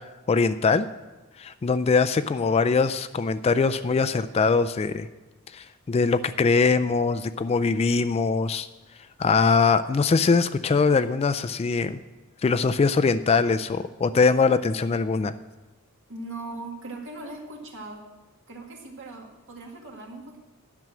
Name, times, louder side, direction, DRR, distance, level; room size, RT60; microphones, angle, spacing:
voice 1, 0.3-0.9 1.4-5.1 5.5-8.7 9.2-12.0 12.4-15.3, left 4 dB, 25° left, 11 dB, 0.3 m, -22 dB
voice 2, 16.1-18.1 18.5-20.4, right 2 dB, 60° right, 1 dB, 1.9 m, -39 dB
11.0 x 6.2 x 7.5 m, 1.2 s
head